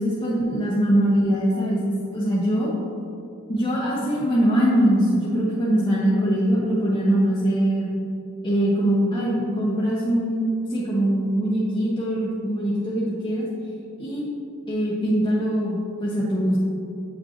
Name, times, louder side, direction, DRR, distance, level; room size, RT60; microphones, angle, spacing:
voice 1, 0.0-2.7 3.5-8.0 8.4-13.5 14.0-14.2 14.7-16.6, equal, 20° left, -9 dB, 0.9 m, -22 dB
8.0 x 5.4 x 2.9 m, 2.7 s
head